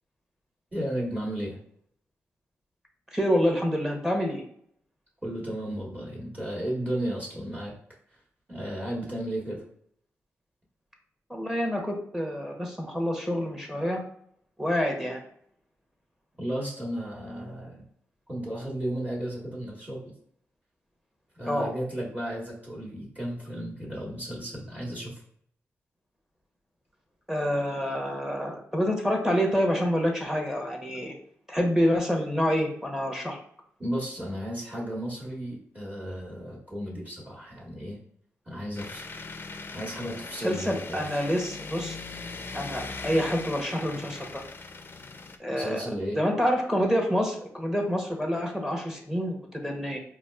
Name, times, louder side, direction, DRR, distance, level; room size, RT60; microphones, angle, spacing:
voice 1, 0.7-1.6 5.2-7.7 8.5-9.6 16.4-17.8 18.3-20.0 21.4-25.2 33.8-38.0 38.5-39.2 39.7-41.4 45.6-46.2, right 1 dB, 25° right, -4 dB, 1.3 m, -34 dB
voice 2, 3.1-4.4 11.3-14.0 14.6-15.2 21.5-21.7 27.3-31.1 31.5-33.4 40.4-42.0 42.5-44.4 45.4-45.8 46.1-50.0, equal, 5° right, 2 dB, 0.8 m, -27 dB
sound 1, 38.8-45.4, left 3 dB, 40° left, 0.4 m, -40 dB
4.0 x 2.4 x 2.3 m, 0.66 s
supercardioid pair, 45°, 6 cm